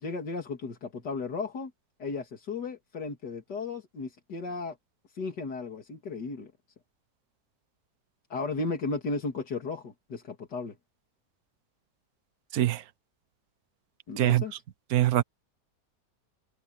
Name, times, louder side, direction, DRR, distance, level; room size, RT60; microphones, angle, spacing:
voice 1, 0.0-1.7 2.0-4.8 5.2-6.5 8.3-10.8 14.1-14.5, left 4 dB, 90° left, 3.0 m, -35 dB
voice 2, 12.5-12.8 14.2-14.4 14.9-15.2, right 13 dB, 65° right, 1.4 m, -23 dB
omnidirectional pair, 1.8 m